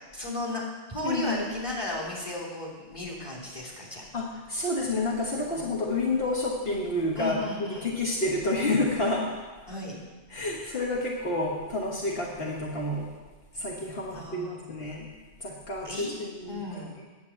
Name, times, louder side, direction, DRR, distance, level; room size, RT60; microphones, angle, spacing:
voice 1, 0.1-0.6 0.9-4.1 5.5-5.6 7.1-7.9 9.7-10.0 14.1-14.7 15.8-16.2 16.4-17.0, left 1 dB, 30° left, -3 dB, 3.0 m, -35 dB
voice 2, 1.0-1.4 4.1-7.4 7.7-9.3 10.3-13.1 13.5-15.1 15.4-16.8, left 2 dB, 70° left, -3 dB, 1.6 m, -29 dB
9.6 x 7.6 x 8.4 m, 1.3 s
omnidirectional pair, 1.1 m